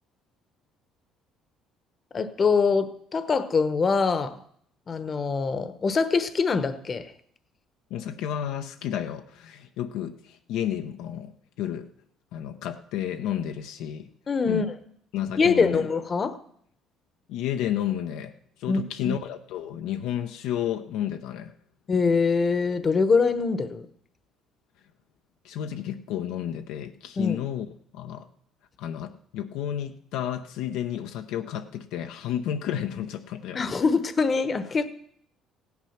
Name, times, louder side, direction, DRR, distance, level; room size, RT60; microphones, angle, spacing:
voice 1, 2.1-4.4 4.9-7.1 14.3-14.7 15.4-16.4 18.7-19.2 21.9-23.9 27.2-27.4 33.5-34.9, left 5 dB, 35° left, 12 dB, 1.0 m, -24 dB
voice 2, 7.9-11.3 11.6-11.9 12.3-14.1 14.4-14.7 15.1-15.9 17.3-18.3 18.6-21.5 25.4-27.7 27.9-28.3 28.8-33.7, left 10 dB, 80° left, 6 dB, 0.8 m, -31 dB
15.5 x 9.6 x 5.9 m, 0.66 s
cardioid pair, 100°, 0 cm